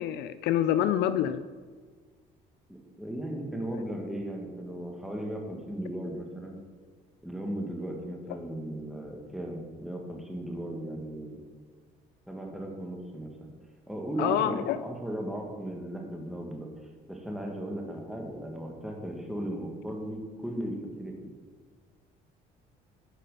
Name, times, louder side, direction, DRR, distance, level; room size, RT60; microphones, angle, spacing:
voice 1, 0.0-1.4 14.2-14.8, left 11 dB, 80° left, 13 dB, 0.4 m, -26 dB
voice 2, 2.7-6.6 7.2-11.4 12.3-13.5 13.9-16.7 17.1-21.3, right 1 dB, ahead, 0 dB, 1.5 m, -36 dB
8.2 x 5.8 x 5.3 m, 1.5 s
cardioid pair, 110°, 17 cm